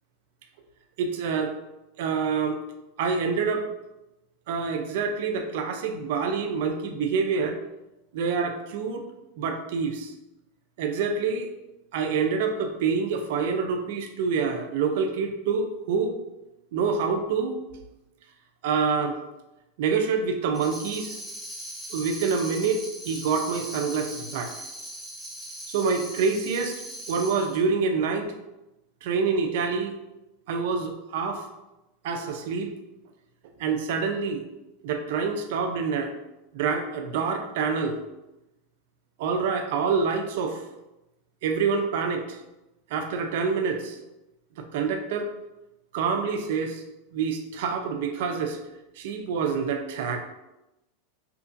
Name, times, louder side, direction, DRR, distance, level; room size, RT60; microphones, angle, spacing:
voice 1, 1.0-1.5 2.0-2.6 3.0-3.7 4.5-7.6 8.1-9.0 9.4-10.1 10.8-11.5 11.9-16.2 16.7-17.6 18.6-19.2 19.8-21.2 21.9-24.5 25.7-26.8 27.1-28.3 29.0-29.9 30.5-31.4 32.0-32.7 33.6-34.4 34.8-36.1 36.5-38.0 39.2-40.6 41.4-42.4 42.9-44.0 44.6-45.3 45.9-46.8 47.1-48.6 49.0-50.2, right 5 dB, 70° right, 6 dB, 0.4 m, -26 dB
Tambourine, 20.5-27.6, right 1 dB, ahead, 0.5 m, -40 dB
2.8 x 2.4 x 2.5 m, 0.96 s
supercardioid pair, 140°, 0 cm